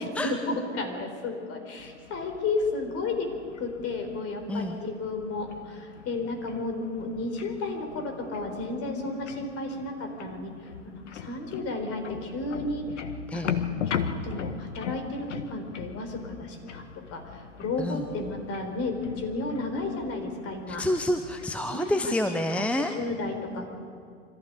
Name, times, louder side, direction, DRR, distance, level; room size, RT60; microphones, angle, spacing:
voice 1, 0.0-3.3 3.6-12.9 13.3-13.4 13.9-20.8 21.7-21.9 22.9-23.7, left 3 dB, 40° left, 5 dB, 4.5 m, -33 dB
sound 1, 1.8-21.6, left 7 dB, 70° left, 1.6 m, -39 dB
voice 2, 4.5-4.8 13.3-13.5 17.8-18.0 20.7-22.9, left 1 dB, 5° left, 6 dB, 0.9 m, -28 dB
25.5 x 14.5 x 8.1 m, 2.3 s
figure-of-eight pair, 90°, 37 cm